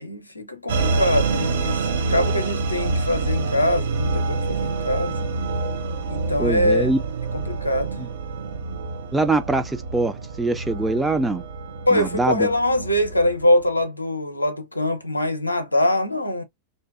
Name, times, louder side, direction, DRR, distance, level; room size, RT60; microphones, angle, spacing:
voice 1, 0.0-5.2 6.1-7.0 7.3-8.0 11.9-16.4, left 1 dB, 85° left, 0.6 m, -23 dB
sound 1, 0.7-13.7, right 3 dB, 60° right, 0.6 m, -27 dB
voice 2, 6.4-7.0 8.0-8.1 9.1-11.4 11.9-12.5, right 2 dB, 10° right, 0.4 m, -23 dB
2.7 x 2.2 x 2.3 m
figure-of-eight pair, 90°, 0 cm